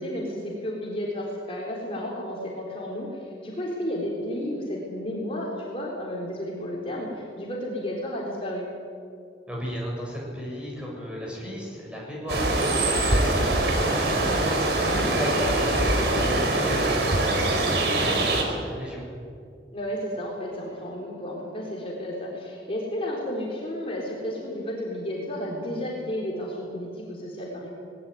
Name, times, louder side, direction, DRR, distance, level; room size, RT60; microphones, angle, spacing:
voice 1, 0.0-8.7 14.9-15.4 19.7-27.7, equal, 30° left, -3 dB, 3.7 m, -32 dB
voice 2, 9.5-19.0, equal, 5° right, -3 dB, 7.0 m, -34 dB
sound 1, 12.3-18.4, right 2 dB, 75° right, 3.6 m, -23 dB
20.0 x 17.5 x 9.6 m, 2.3 s
head